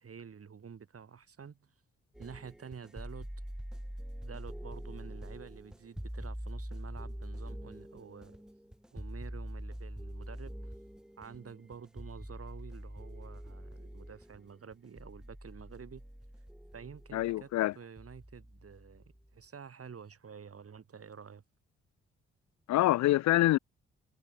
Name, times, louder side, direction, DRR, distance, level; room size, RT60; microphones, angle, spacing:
voice 1, 0.0-1.7 2.2-3.3 4.2-8.4 8.9-10.7 11.2-16.1 16.7-21.4, right 6 dB, 50° right, 4.2 m, -49 dB
sound 1, 2.1-19.4, equal, ahead, 1.1 m, -44 dB
voice 2, 17.1-17.7 22.7-23.6, left 16 dB, 65° left, 0.5 m, -25 dB
supercardioid pair, 50°, 30 cm